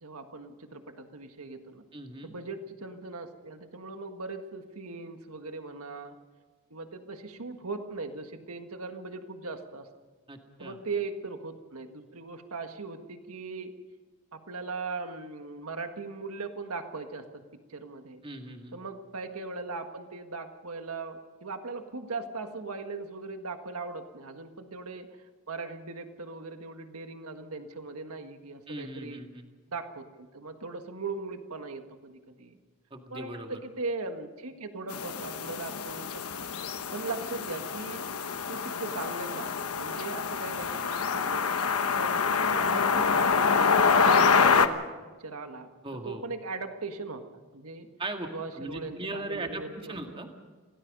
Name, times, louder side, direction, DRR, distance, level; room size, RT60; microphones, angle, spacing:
voice 1, 0.0-1.8 2.2-6.2 6.7-9.9 10.6-13.7 14.3-17.4 17.7-18.2 18.7-25.1 25.5-29.2 29.7-32.6 33.1-36.1 36.9-38.1 38.5-41.4 41.8-44.8 45.2-45.7 46.0-47.2 47.5-47.9 48.3-50.3, right 3 dB, 85° right, 6 dB, 1.7 m, -39 dB
voice 2, 1.9-2.3 10.3-10.8 18.2-18.7 28.7-29.4 32.9-33.6 45.8-46.2 48.0-48.3 48.5-50.3, right 2 dB, 25° right, 3 dB, 2.0 m, -38 dB
sound 1, 34.9-44.7, left 5 dB, 85° left, 1.2 m, -26 dB
27.0 x 18.0 x 5.4 m, 1.4 s
head